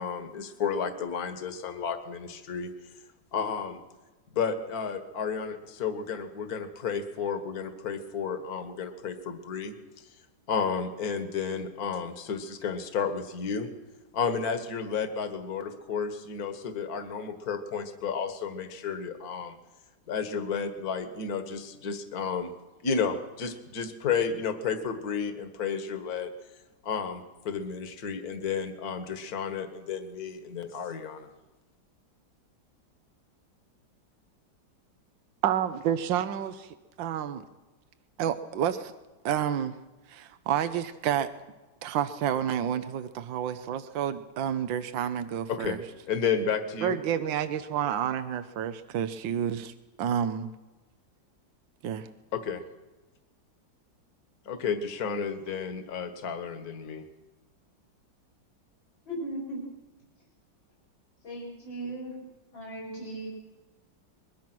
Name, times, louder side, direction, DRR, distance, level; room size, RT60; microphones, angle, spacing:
voice 1, 0.0-2.7 3.3-3.8 4.3-9.8 10.5-13.7 14.1-19.6 20.1-22.5 22.8-26.3 26.8-31.3 45.5-45.8 46.1-47.0 52.3-52.6 54.5-57.0, left 6 dB, 55° left, 8 dB, 2.0 m, -32 dB
voice 2, 35.4-37.4 38.2-38.9 39.2-39.8 40.1-41.3 41.8-45.8 46.8-49.7 50.0-50.5 51.8-52.1, right 9 dB, 80° right, 11 dB, 1.6 m, -29 dB
voice 3, 59.1-59.6 61.2-62.1 62.5-63.3, right 1 dB, 85° left, -3 dB, 5.5 m, -37 dB
23.5 x 22.0 x 6.1 m, 1.2 s
omnidirectional pair, 2.0 m